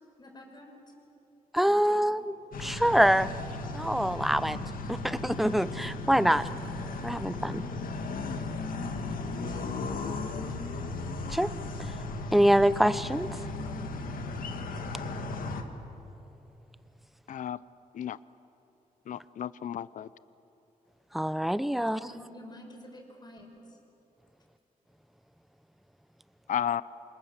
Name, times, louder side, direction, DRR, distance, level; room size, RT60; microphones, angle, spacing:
voice 1, 0.2-0.8 1.7-1.9 9.3-9.8 10.4-10.7 21.7-23.8, left 1 dB, 30° left, 2 dB, 5.4 m, -49 dB
voice 2, 1.5-2.3 2.6-3.3 3.7-4.6 4.9-6.4 7.0-7.6 11.3-11.5 12.3-13.3 21.1-22.0, equal, ahead, 14 dB, 0.6 m, -25 dB
sound 1, 2.5-15.6, left 3 dB, 80° left, 2.0 m, -36 dB
voice 3, 17.3-17.6 17.9-18.2 19.1-20.1 26.5-26.8, left 10 dB, 65° left, 18 dB, 0.5 m, -32 dB
28.5 x 26.0 x 7.4 m, 2.9 s
wide cardioid pair, 130°, 14 cm